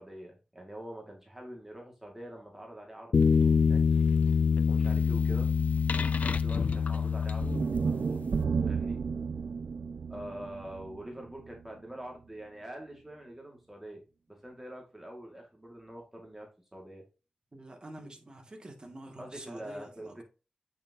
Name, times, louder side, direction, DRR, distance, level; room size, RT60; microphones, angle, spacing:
voice 1, 0.0-3.8 4.7-5.5 5.9-8.2 8.6-9.0 10.1-14.0 14.3-17.0 19.2-20.2, right 1 dB, 10° right, 2.0 m, -45 dB
sound 1, 3.1-8.1, left 6 dB, 75° left, 0.4 m, -25 dB
sound 2, 7.4-11.6, right 5 dB, 80° right, 0.4 m, -32 dB
voice 2, 17.5-20.2, right 1 dB, 35° right, 2.2 m, -47 dB
8.5 x 6.1 x 2.8 m
wide cardioid pair, 115°, 3 cm